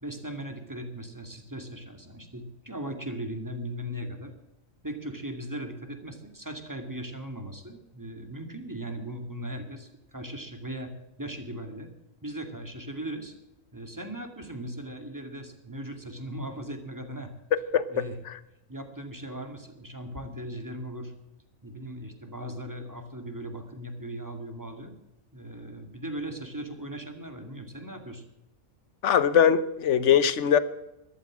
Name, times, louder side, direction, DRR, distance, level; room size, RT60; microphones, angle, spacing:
voice 1, 0.0-4.3 4.8-10.9 11.2-11.9 12.2-13.3 13.7-17.3 17.9-18.2 18.7-21.1 21.6-24.9 25.3-28.2, right 1 dB, 15° right, 5 dB, 2.2 m, -38 dB
voice 2, 17.7-18.0 29.0-30.6, left 8 dB, 60° left, 15 dB, 1.2 m, -21 dB
14.0 x 12.5 x 7.4 m, 0.93 s
omnidirectional pair, 1.4 m